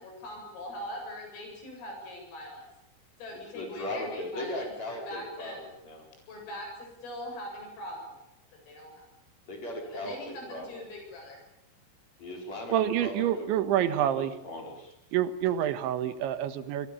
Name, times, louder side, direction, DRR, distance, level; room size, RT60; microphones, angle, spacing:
voice 1, 0.0-2.6 3.2-5.6 6.3-8.1 8.7-9.1 9.9-11.4, left 1 dB, 90° left, 2 dB, 10.5 m, -41 dB
voice 2, 3.3-6.0 9.5-10.8 12.2-12.7 13.0-13.5 13.8-14.9, left 1 dB, 35° left, 2 dB, 6.2 m, -38 dB
voice 3, 12.7-14.4 15.1-16.9, right 11 dB, 75° right, 11 dB, 3.6 m, -27 dB
28.0 x 23.5 x 7.2 m, 0.84 s
omnidirectional pair, 5.7 m